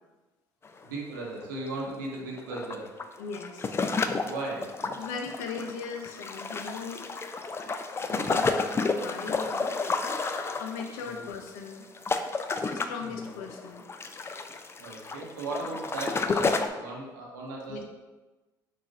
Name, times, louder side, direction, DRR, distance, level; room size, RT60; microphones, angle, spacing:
sound 1, 0.7-0.8 1.1-1.2 2.1-16.7, left 4 dB, 25° left, 0.3 m, -31 dB
voice 1, 0.8-2.9 4.2-4.7 11.0-11.3 13.0-13.2 14.8-17.9, right 2 dB, 85° right, -3 dB, 0.9 m, -37 dB
voice 2, 3.2-3.9 5.0-7.1 7.6-7.7 8.1-10.1 10.6-11.8 12.7-13.8 17.7-17.9, left 5 dB, 80° left, 4 dB, 0.5 m, -39 dB
3.8 x 2.4 x 3.9 m, 1.2 s
hypercardioid pair, 60°, 10 cm